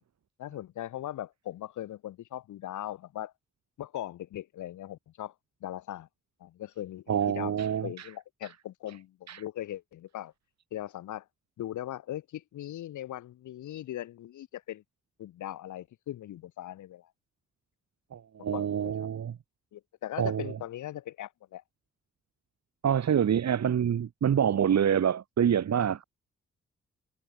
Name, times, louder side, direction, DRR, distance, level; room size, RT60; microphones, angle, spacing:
voice 1, 0.4-3.3 3.8-5.3 5.6-6.1 6.4-7.6 7.8-10.3 10.7-11.2 11.6-14.8 15.2-17.1 18.5-19.1 19.7-21.6, left 13 dB, 85° left, 7.8 m, -39 dB
voice 2, 7.1-8.1 9.3-9.4 18.1-19.3 20.2-20.6 22.8-26.0, right 8 dB, 65° right, 1.7 m, -26 dB
supercardioid pair, 40°, 29 cm